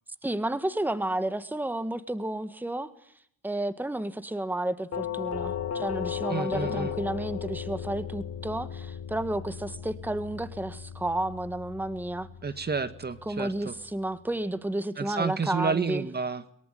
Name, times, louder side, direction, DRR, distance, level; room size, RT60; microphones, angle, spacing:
voice 1, 0.2-2.9 3.4-12.3 13.3-16.1, right 1 dB, 5° right, 12 dB, 1.6 m, -31 dB
Doorbell, 4.9-13.8, left 9 dB, 55° left, 3.3 m, -36 dB
voice 2, 6.3-7.0 12.4-13.7 15.0-16.4, right 5 dB, 35° right, 12 dB, 1.8 m, -30 dB
23.0 x 23.0 x 9.2 m, 0.69 s
cardioid pair, 90°, 30 cm